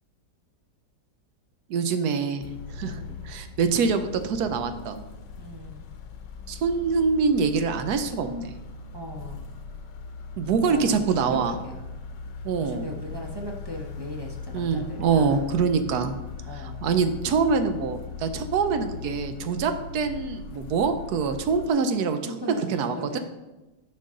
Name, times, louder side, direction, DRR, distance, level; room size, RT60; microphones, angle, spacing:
voice 1, 1.7-5.0 6.5-8.5 10.4-11.6 12.4-12.9 14.5-16.1 16.5-22.3 22.7-23.2, right 5 dB, 70° right, 8 dB, 1.1 m, -25 dB
sound 1, 2.4-21.7, left 5 dB, 90° left, 1.4 m, -40 dB
voice 2, 2.8-3.2 5.4-5.8 8.9-9.5 10.7-10.9 11.5-11.8 12.6-15.4 16.5-16.8 19.6-19.8 22.3-23.2, equal, 30° right, -1 dB, 0.5 m, -38 dB
10.5 x 4.5 x 3.7 m, 1.0 s
omnidirectional pair, 1.8 m